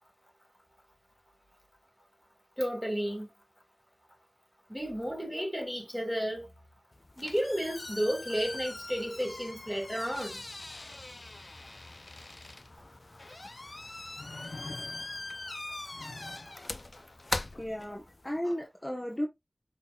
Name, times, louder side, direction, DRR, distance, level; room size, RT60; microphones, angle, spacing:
voice 1, 2.6-3.3 4.7-6.5 7.2-10.4, equal, 5° right, 1.5 m, -32 dB
sound 1, 6.9-18.4, left 2 dB, 55° left, 0.4 m, -42 dB
sound 2, 12.8-12.9 14.1-15.4 15.9-16.6 18.5-18.6, left 3 dB, 90° left, 0.7 m, -45 dB
voice 2, 17.5-19.3, equal, 20° left, 0.9 m, -34 dB
5.4 x 3.7 x 2.3 m
wide cardioid pair, 55°, 0 cm